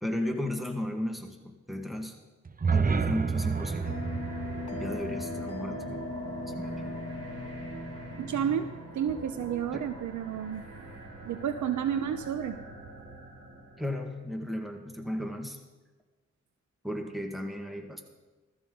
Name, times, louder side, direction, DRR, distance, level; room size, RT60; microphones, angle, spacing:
voice 1, 0.0-2.2 2.7-4.0 4.7-6.1 6.5-6.8 9.7-9.9 13.8-15.6 16.8-18.0, left 1 dB, ahead, 3 dB, 1.9 m, -35 dB
sound 1, 2.4-6.5, right 5 dB, 30° right, 0.7 m, -31 dB
sound 2, 3.3-14.0, right 2 dB, 50° right, 5.0 m, -43 dB
Bell, 3.8-8.9, left 3 dB, 55° left, 2.2 m, -39 dB
voice 2, 8.2-10.7 11.2-12.6, right 8 dB, 85° right, 9 dB, 0.8 m, -31 dB
16.0 x 14.0 x 4.0 m, 1.2 s
cardioid pair, 70°, 29 cm